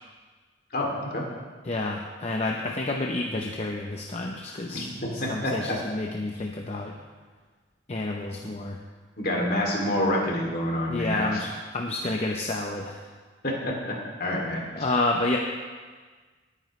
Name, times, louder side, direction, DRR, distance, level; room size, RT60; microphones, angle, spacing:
voice 1, 0.7-1.2 4.7-5.7 9.2-11.4 13.4-14.7, left 1 dB, 55° left, -2 dB, 2.7 m, -28 dB
voice 2, 1.6-6.9 7.9-8.8 10.9-13.1 14.7-15.4, left 2 dB, 35° left, 1 dB, 0.7 m, -29 dB
19.0 x 9.2 x 3.2 m, 1.5 s
head